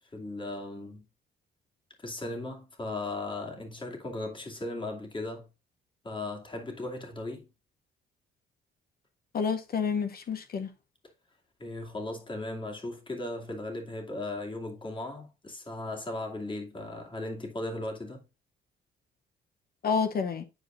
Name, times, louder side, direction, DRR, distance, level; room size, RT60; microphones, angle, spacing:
voice 1, 0.1-1.0 2.0-5.5 6.0-7.5 11.6-18.2, left 2 dB, 25° left, 2.4 m, -37 dB
voice 2, 9.3-10.7 19.8-20.4, left 6 dB, 50° left, 0.7 m, -29 dB
9.8 x 4.7 x 2.5 m
cardioid pair, 90°, 20 cm